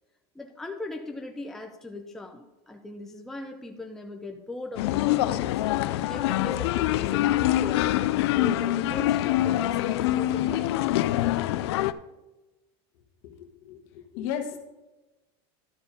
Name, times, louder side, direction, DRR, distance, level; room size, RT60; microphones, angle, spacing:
voice 1, 0.3-5.6 5.8-7.9 8.2-10.9, left 2 dB, 5° left, 3 dB, 0.5 m, -39 dB
sound 1, 4.8-11.9, left 14 dB, 80° left, 0.4 m, -25 dB
voice 2, 13.2-14.6, left 8 dB, 55° left, 5 dB, 1.4 m, -35 dB
12.0 x 4.7 x 5.2 m, 1.0 s
supercardioid pair, 165°, 14 cm